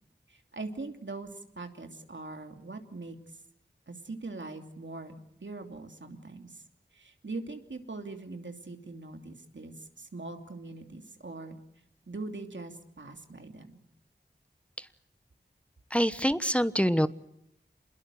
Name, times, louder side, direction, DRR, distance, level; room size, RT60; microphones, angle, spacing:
voice 1, 0.3-1.3 1.6-3.2 3.9-6.6 6.9-11.6 12.1-13.8, right 3 dB, 85° right, 5 dB, 2.9 m, -42 dB
voice 2, 15.9-17.1, equal, 5° left, 13 dB, 1.1 m, -25 dB
27.0 x 21.5 x 7.8 m, 0.75 s
wide cardioid pair, 45°, 19 cm